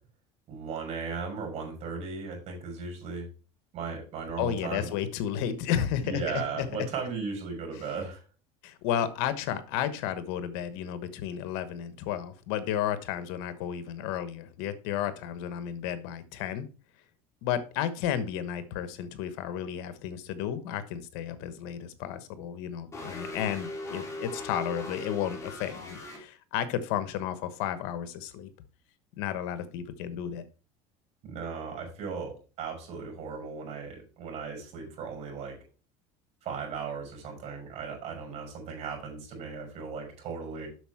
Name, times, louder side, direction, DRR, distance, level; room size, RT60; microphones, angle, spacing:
voice 1, 0.5-3.3 3.7-5.0 6.0-8.2 31.2-35.5 36.4-40.7, right 5 dB, 50° right, 2 dB, 5.6 m, -36 dB
voice 2, 4.4-6.2 6.5-6.9 8.6-16.7 17.4-28.5 29.2-30.4, left 10 dB, 75° left, 13 dB, 1.2 m, -32 dB
sound 1, 22.9-26.2, left 2 dB, 20° left, 3.4 m, -39 dB
7.9 x 6.5 x 4.6 m, 0.36 s
cardioid pair, 130°, 14 cm